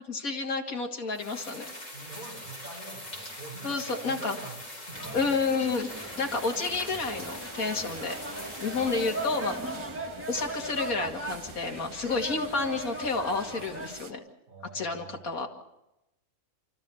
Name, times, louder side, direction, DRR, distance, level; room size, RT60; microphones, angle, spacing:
voice 1, 0.1-1.6 3.6-4.3 5.1-8.2 8.6-9.6 10.3-14.2 14.7-15.5, left 4 dB, 75° left, 2 dB, 2.7 m, -30 dB
sound 1, 1.1-10.1, left 1 dB, 30° left, 4.5 m, -43 dB
voice 2, 1.9-5.3 8.6-8.7 14.5-15.5, right 3 dB, 80° right, 1 dB, 5.4 m, -45 dB
sound 2, 4.9-13.9, right 1 dB, 10° right, 1.7 m, -39 dB
sound 3, 5.9-14.1, right 3 dB, 25° right, 0.7 m, -46 dB
29.0 x 13.5 x 7.1 m, 0.90 s
omnidirectional pair, 1.5 m